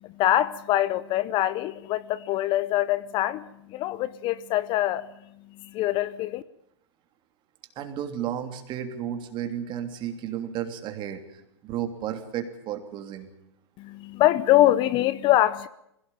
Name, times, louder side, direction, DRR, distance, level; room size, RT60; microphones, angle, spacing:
voice 1, 0.0-5.1 5.6-6.4 13.8-15.7, left 14 dB, 35° left, 0.8 m, -24 dB
voice 2, 7.7-13.3, right 10 dB, 35° right, 3.1 m, -33 dB
21.5 x 17.0 x 8.9 m
hypercardioid pair, 120°, 14 cm